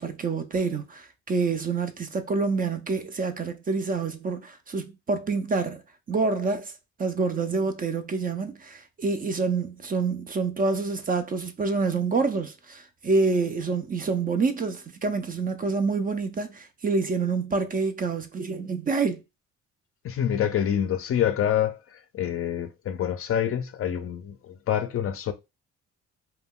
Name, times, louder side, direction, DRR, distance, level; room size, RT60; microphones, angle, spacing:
voice 1, 0.0-5.8 6.1-6.7 7.0-19.2, right 4 dB, 30° right, 0.4 m, -27 dB
voice 2, 20.0-25.3, left 10 dB, 50° left, 0.4 m, -27 dB
2.2 x 2.2 x 3.5 m
cardioid pair, 90°, 30 cm